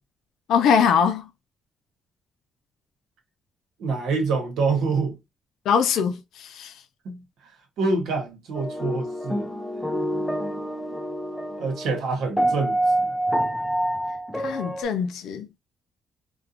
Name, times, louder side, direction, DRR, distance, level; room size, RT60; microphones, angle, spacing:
voice 1, 0.5-1.3 5.7-6.7 14.4-15.5, left 7 dB, 80° left, 0.4 m, -22 dB
voice 2, 3.8-5.2 7.0-7.2 7.8-9.5 11.6-13.1, right 4 dB, 80° right, 1.0 m, -26 dB
sound 1, 8.5-12.0 12.4-14.8, right 1 dB, 5° left, 0.3 m, -27 dB
2.4 x 2.2 x 2.7 m
cardioid pair, 155°, 0 cm